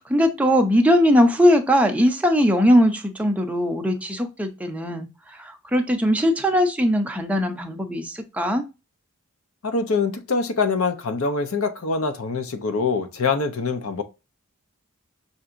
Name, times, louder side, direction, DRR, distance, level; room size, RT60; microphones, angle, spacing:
voice 1, 0.0-8.6, equal, 5° right, 0.6 m, -20 dB
voice 2, 9.6-14.0, left 4 dB, 75° left, 0.7 m, -24 dB
5.7 x 2.7 x 2.5 m
head